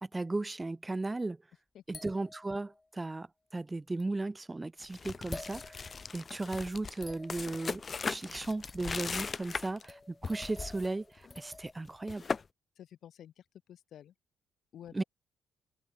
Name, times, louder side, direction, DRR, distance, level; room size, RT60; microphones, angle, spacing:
voice 1, 0.0-1.4 1.9-7.8 8.1-12.3 14.9-15.0, right 2 dB, 20° right, 2.3 m, -36 dB
sound 1, 1.9-3.1 4.0-4.1 5.3-6.4 7.0-9.1 9.9-11.7, left 2 dB, 20° left, 4.0 m, -49 dB
sound 2, 4.8-9.9 10.2-10.9 11.2-11.4 11.8-12.4, left 5 dB, 35° left, 1.0 m, -38 dB
voice 2, 12.8-14.1 14.7-15.0, left 10 dB, 70° left, 5.6 m, -51 dB
cardioid pair, 90°, 0 cm